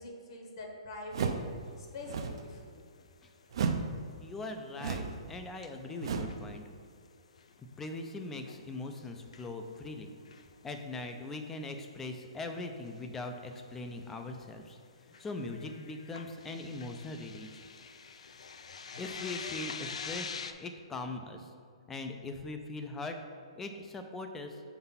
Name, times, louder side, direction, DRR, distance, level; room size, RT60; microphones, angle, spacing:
voice 1, 0.0-1.4 1.8-2.8, left 2 dB, 55° left, 1 dB, 1.1 m, -44 dB
sound 1, 1.1-1.5 2.0-2.4 3.5-3.9 4.8-5.2 6.0-6.4, right 5 dB, 50° right, 0.5 m, -33 dB
sound 2, 1.3-1.8 2.1-2.2 2.6-2.7 3.0-4.1 4.4-6.5 6.9-10.8 11.2-11.6 11.8-12.0 12.2-12.4 12.9-14.7 15.1-20.5, left 5 dB, 85° left, 0.4 m, -46 dB
voice 2, 4.2-6.6 7.8-10.1 10.6-14.8 15.2-17.6 19.0-20.3 20.6-21.5 21.9-23.2 23.6-24.6, left 2 dB, 10° left, 5 dB, 0.3 m, -41 dB
5.3 x 4.0 x 5.6 m, 2.2 s
hypercardioid pair, 165°, 3 cm